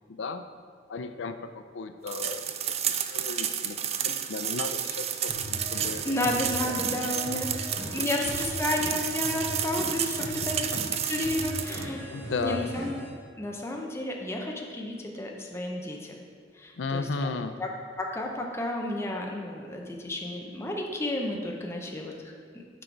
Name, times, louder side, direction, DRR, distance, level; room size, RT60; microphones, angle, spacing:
voice 1, 0.1-0.4 0.9-2.4 3.1-6.7 10.2-10.3 10.6-10.7 12.1-12.6 16.8-17.5, left 4 dB, 90° left, 9 dB, 0.4 m, -35 dB
sound 1, 2.1-11.9, right 9 dB, 35° right, 0.3 m, -31 dB
sound 2, 5.3-13.1, equal, 70° right, 1.6 m, -38 dB
voice 2, 6.0-10.8 11.1-12.1 12.4-13.0 13.4-16.1 16.6-17.3 17.6-17.7 18.0-22.1, left 1 dB, 15° left, 0 dB, 0.6 m, -32 dB
6.1 x 5.1 x 4.5 m, 2.1 s
head